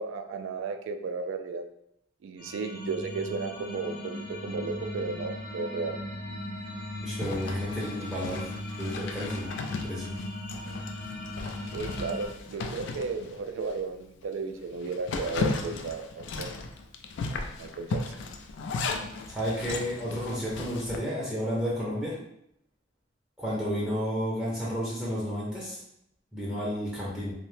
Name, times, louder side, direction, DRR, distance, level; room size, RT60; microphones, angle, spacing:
voice 1, 0.0-1.6 2.2-6.0 11.7-16.6 17.6-18.0, right 4 dB, 75° right, 7 dB, 0.3 m, -34 dB
sound 1, 2.4-12.3, left 1 dB, 45° left, 0.9 m, -38 dB
voice 2, 7.0-8.5 8.8-10.1 19.3-22.2 23.4-25.8 26.3-27.3, equal, 5° right, -8 dB, 0.6 m, -32 dB
Zipper (clothing), 7.2-13.8 14.2-14.3 14.7-21.0, left 3 dB, 65° left, 0.3 m, -36 dB
2.7 x 2.1 x 3.1 m, 0.76 s
head